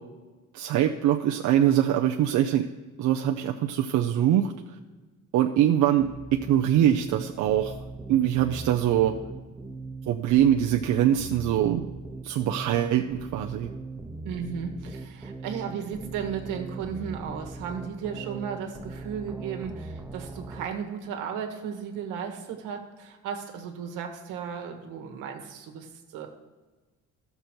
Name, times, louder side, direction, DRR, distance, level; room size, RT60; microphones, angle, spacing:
voice 1, 0.5-2.7 3.0-4.5 5.3-6.1 6.5-7.7 8.1-9.1 10.1-11.9 12.2-13.7, right 11 dB, 70° right, 3 dB, 0.6 m, -23 dB
sound 1, 6.0-20.7, right 3 dB, 5° right, 0.8 m, -40 dB
voice 2, 14.2-26.3, right 7 dB, 90° right, 4 dB, 1.4 m, -35 dB
14.0 x 6.8 x 4.4 m, 1.3 s
cardioid pair, 110°, 30 cm